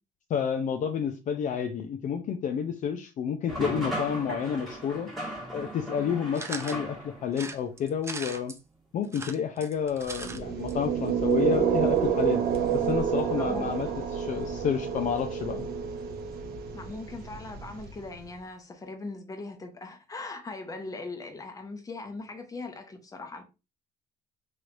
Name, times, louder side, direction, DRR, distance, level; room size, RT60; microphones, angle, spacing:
voice 1, 0.3-5.1 5.5-8.5 8.9-12.4 12.7-15.7, left 7 dB, 50° left, 0.4 m, -30 dB
sound 1, 3.5-7.4, right 1 dB, ahead, 1.3 m, -36 dB
sound 2, 6.3-6.8 7.3-8.6 9.0-10.4 10.7-10.8 11.0-11.1, right 3 dB, 15° right, 0.4 m, -39 dB
sound 3, 10.1-18.2, right 8 dB, 70° right, 0.7 m, -29 dB
voice 2, 13.4-13.9 16.7-23.4, left 3 dB, 20° left, 0.8 m, -40 dB
3.2 x 3.1 x 2.5 m
cardioid pair, 110°, 17 cm